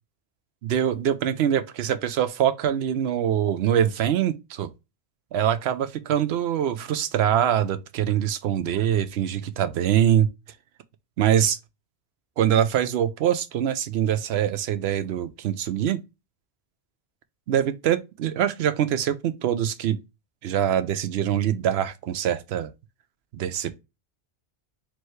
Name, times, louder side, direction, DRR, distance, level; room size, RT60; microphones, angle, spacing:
voice 1, 0.6-4.7 5.3-10.3 11.2-11.6 12.4-16.0 17.5-20.0 20.4-22.7 23.3-23.8, right 10 dB, 80° right, 0.8 m, -24 dB
4.4 x 3.1 x 3.2 m
omnidirectional pair, 1.1 m